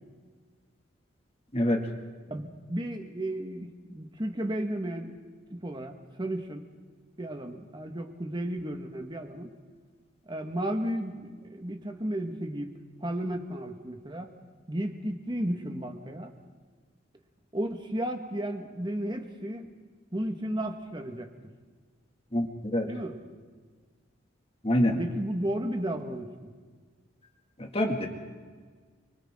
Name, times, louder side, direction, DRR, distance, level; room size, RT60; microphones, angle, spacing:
voice 1, 2.3-5.2 5.5-6.6 7.2-9.5 10.2-12.7 13.0-14.3 14.7-16.3 17.5-19.7 20.1-21.3 22.9-23.2 25.0-26.5, right 1 dB, 25° right, 5 dB, 1.7 m, -33 dB
voice 2, 24.6-25.0 27.6-28.1, left 1 dB, 30° left, 2 dB, 2.3 m, -25 dB
29.5 x 24.0 x 3.8 m, 1.5 s
head